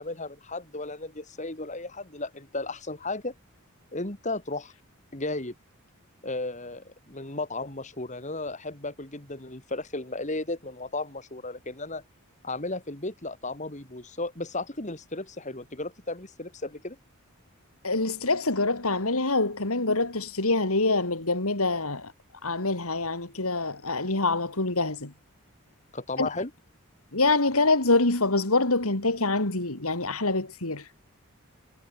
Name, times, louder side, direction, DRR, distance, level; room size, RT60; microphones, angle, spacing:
voice 1, 0.0-3.3 3.9-4.7 5.1-5.5 6.2-12.0 12.4-17.0 25.9-26.5, left 2 dB, 35° left, 2.7 m, -34 dB
voice 2, 17.8-22.1 22.4-25.1 26.2-26.3 27.1-30.8, left 3 dB, 80° left, 3.5 m, -25 dB
head